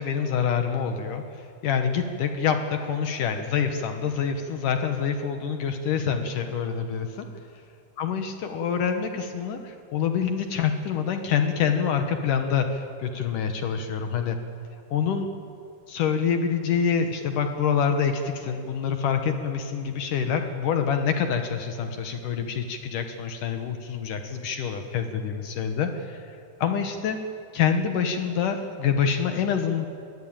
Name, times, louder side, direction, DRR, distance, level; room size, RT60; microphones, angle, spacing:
voice 1, 0.0-7.3 8.0-14.4 14.9-15.3 15.9-26.2 26.6-27.2 27.5-29.9, left 7 dB, 70° left, 6 dB, 2.6 m, -26 dB
26.5 x 20.5 x 8.9 m, 2.5 s
omnidirectional pair, 4.2 m